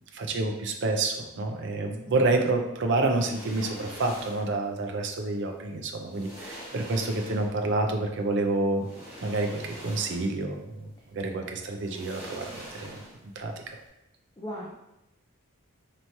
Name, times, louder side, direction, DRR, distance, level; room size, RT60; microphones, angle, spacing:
voice 1, 0.1-8.8 9.2-12.9 13.4-13.5, right 2 dB, 60° right, 3 dB, 0.5 m, -28 dB
sound 1, 3.0-4.6 5.6-5.7 6.1-7.7 8.8-10.5 10.8-11.0 11.8-13.4 13.6-13.8, equal, 5° right, 1.3 m, -44 dB
voice 2, 14.4-14.7, equal, 15° left, -4 dB, 0.5 m, -38 dB
4.5 x 3.0 x 2.7 m, 0.86 s
head